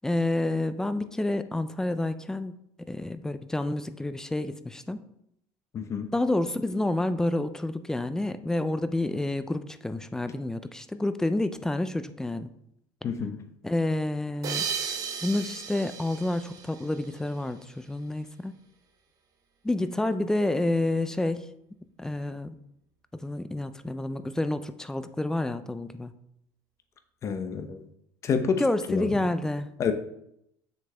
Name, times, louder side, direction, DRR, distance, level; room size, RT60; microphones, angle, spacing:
voice 1, 0.0-2.5 2.9-5.0 6.1-12.5 13.6-14.7 15.2-18.5 19.6-21.5 22.0-22.6 23.2-26.1 28.6-29.7, left 2 dB, 5° left, 11 dB, 0.3 m, -29 dB
voice 2, 5.7-6.1 13.0-13.3 27.2-27.8 28.2-28.6 28.9-29.1 29.8-29.9, left 6 dB, 30° left, 7 dB, 0.8 m, -28 dB
sound 1, 14.4-17.5, right 7 dB, 40° right, 1.0 m, -35 dB
7.2 x 6.5 x 3.3 m, 0.77 s
cardioid pair, 145°, 10 cm